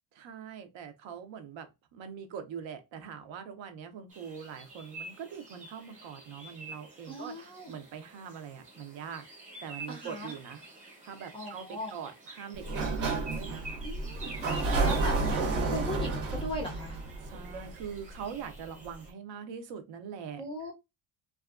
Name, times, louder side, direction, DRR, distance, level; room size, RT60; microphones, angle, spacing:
voice 1, 0.1-9.3 9.6-10.6 11.0-13.7 14.5-15.1 17.2-20.5, right 7 dB, 65° right, 0.6 m, -43 dB
sound 1, 4.1-19.1, right 2 dB, 15° right, 0.7 m, -48 dB
voice 2, 7.1-7.7 9.9-10.3 11.3-11.9 13.8-14.3 14.8-17.0 20.4-20.7, equal, 10° left, 0.3 m, -38 dB
Sliding door, 12.5-18.2, right 3 dB, 80° right, 1.0 m, -31 dB
2.6 x 2.3 x 2.3 m
cardioid pair, 160°, 49 cm